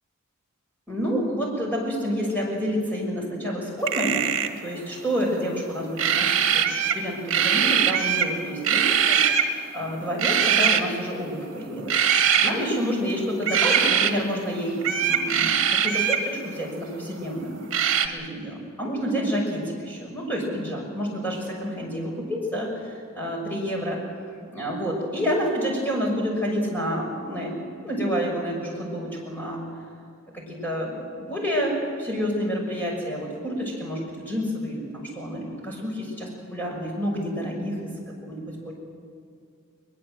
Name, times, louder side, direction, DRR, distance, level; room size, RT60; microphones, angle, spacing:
voice 1, 0.9-4.3 4.6-6.6 6.9-11.9 12.3-17.7 18.0-24.0 24.3-29.6 30.3-37.9 38.2-38.7, equal, 10° left, -2 dB, 6.3 m, -29 dB
sound 1, 3.8-4.6 6.0-7.0 7.3-8.3 8.6-9.5 10.2-10.8 11.9-12.5 13.4-14.1 14.8-16.2 17.7-18.1, right 8 dB, 60° right, 1.6 m, -21 dB
21.5 x 21.5 x 7.8 m, 2.3 s
head